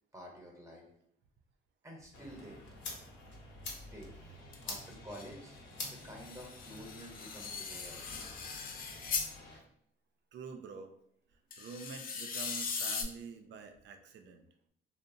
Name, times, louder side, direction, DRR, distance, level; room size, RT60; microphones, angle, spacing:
voice 1, 0.1-0.8 1.8-2.6 3.7-4.1 4.6-5.6 5.9-8.0, equal, 15° right, -1 dB, 0.8 m, -50 dB
sound 1, 2.1-9.6, left 2 dB, 70° left, 0.8 m, -48 dB
sound 2, 4.5-4.6 4.9-5.3 6.0-9.3 11.5-13.0, left 5 dB, 45° left, 0.4 m, -39 dB
voice 2, 10.3-10.9 11.6-14.5, right 5 dB, 65° right, 6 dB, 0.4 m, -47 dB
2.8 x 2.0 x 2.5 m, 0.70 s
cardioid pair, 90°, 20 cm